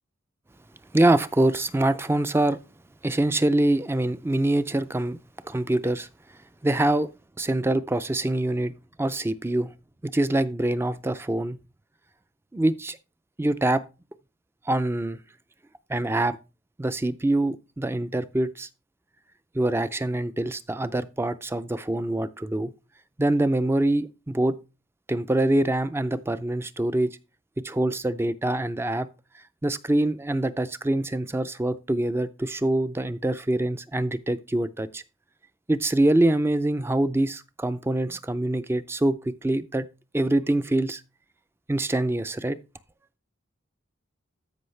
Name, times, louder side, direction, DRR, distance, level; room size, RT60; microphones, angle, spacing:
voice 1, 0.9-2.6 3.0-5.2 5.4-6.1 6.6-7.1 7.4-8.7 9.0-9.7 10.0-11.6 12.5-13.0 13.4-13.8 14.7-15.2 15.9-16.4 16.8-18.7 19.5-22.7 23.2-24.6 25.1-27.2 27.6-29.1 29.6-35.0 35.7-39.9 40.1-41.0 41.7-42.6, right 1 dB, 10° right, 0.4 m, -24 dB
13.5 x 5.4 x 3.2 m
head